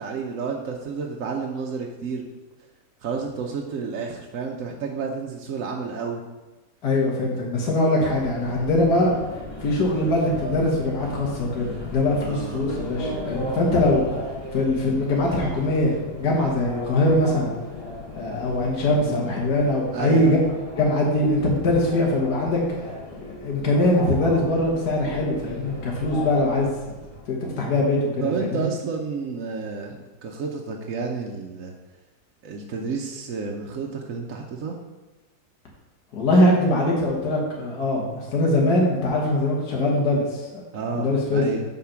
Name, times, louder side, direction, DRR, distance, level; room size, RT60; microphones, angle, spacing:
voice 1, 0.0-2.3 3.0-6.2 12.2-12.7 18.9-19.3 19.9-20.3 28.2-31.7 32.4-34.7 40.7-41.6, right 5 dB, 60° right, 0 dB, 1.0 m, -30 dB
voice 2, 6.8-9.1 9.6-14.0 14.5-17.5 18.2-20.4 20.8-22.9 23.2-26.7 27.3-28.7 36.1-40.6 40.9-41.6, left 1 dB, 70° left, -3 dB, 1.9 m, -22 dB
Subway metro underground, 8.0-27.2, left 1 dB, 20° left, 2.5 m, -36 dB
8.3 x 4.1 x 5.8 m, 1.2 s
omnidirectional pair, 1.8 m